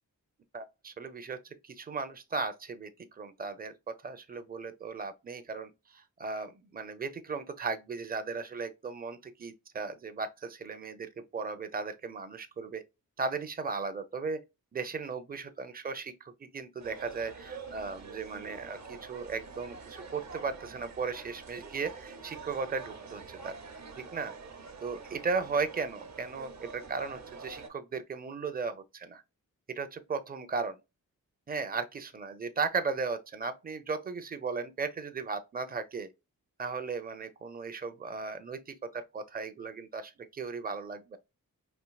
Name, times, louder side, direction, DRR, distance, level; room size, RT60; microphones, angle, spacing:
voice 1, 0.5-12.8 13.2-14.4 14.7-23.6 24.0-24.3 24.8-29.2 29.7-30.8 31.5-36.1 36.6-41.2, right 4 dB, 25° right, 0.6 m, -36 dB
sound 1, 16.8-27.7, right 4 dB, 50° right, 0.9 m, -46 dB
4.5 x 2.7 x 2.3 m
cardioid pair, 60°, 34 cm